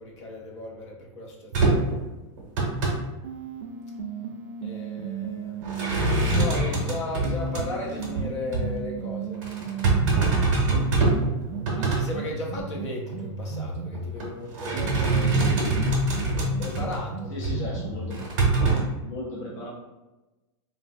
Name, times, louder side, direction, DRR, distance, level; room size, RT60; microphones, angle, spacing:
voice 1, 0.0-1.9 4.6-5.7 6.3-9.4 11.7-15.4 16.6-17.3, left 2 dB, 65° left, -1 dB, 0.8 m, -36 dB
sound 1, 1.5-2.0 2.4-3.0 5.6-7.6 8.0-8.2 8.5-8.7 9.4-11.3 11.5-12.0 12.6-12.7 13.9-14.3 14.5-17.0 17.4-17.6 18.1-18.8, right 2 dB, 35° right, 0.7 m, -24 dB
sound 2, 3.2-6.5 7.2-14.2 14.7-18.2, right 5 dB, 75° right, 0.4 m, -35 dB
voice 2, 17.3-18.2 19.0-19.7, left 1 dB, 35° left, -4 dB, 0.4 m, -35 dB
3.2 x 2.1 x 2.5 m, 1.1 s
supercardioid pair, 180°, 16 cm